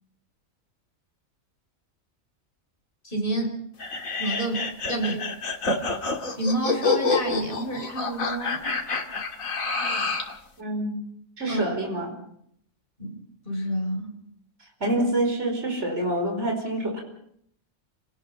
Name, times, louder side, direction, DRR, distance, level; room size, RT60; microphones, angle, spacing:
voice 1, 3.0-3.5 4.2-5.3 6.4-8.7 11.5-11.6 13.0-13.1 13.4-14.1, right 1 dB, 40° left, 1 dB, 5.1 m, -29 dB
sound 1, 3.8-10.4, left 3 dB, 80° left, 2.6 m, -27 dB
voice 2, 10.6-10.9 11.4-12.1 14.8-17.0, right 1 dB, 55° right, 2 dB, 5.4 m, -26 dB
29.0 x 18.5 x 5.7 m, 0.68 s
omnidirectional pair, 1.4 m